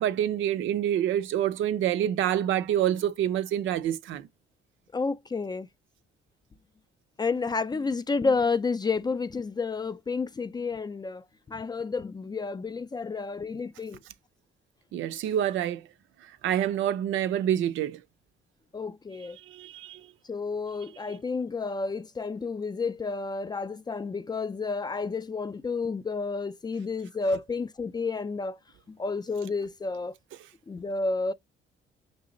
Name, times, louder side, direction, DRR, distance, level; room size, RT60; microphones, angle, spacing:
voice 1, 0.0-4.3 14.9-15.8 16.4-18.0 19.5-20.0, right 11 dB, 75° right, 0.5 m, -27 dB
voice 2, 4.9-5.7 7.2-14.0 18.7-19.4 20.3-28.6 28.9-30.1 30.7-31.3, left 4 dB, 20° left, 0.3 m, -30 dB
5.7 x 2.0 x 3.7 m
cardioid pair, 90°, 20 cm